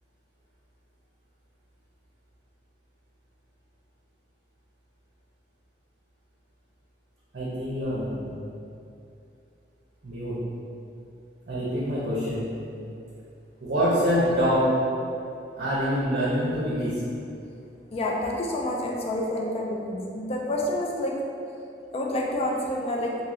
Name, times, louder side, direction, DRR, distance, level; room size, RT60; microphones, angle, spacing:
voice 1, 7.3-8.4 10.0-10.4 11.5-12.5 13.6-14.7 15.6-17.0, equal, 60° right, -9 dB, 0.7 m, -25 dB
voice 2, 17.9-21.2 21.9-23.2, left 1 dB, 35° left, -2 dB, 0.4 m, -28 dB
3.0 x 2.7 x 2.6 m, 2.6 s
head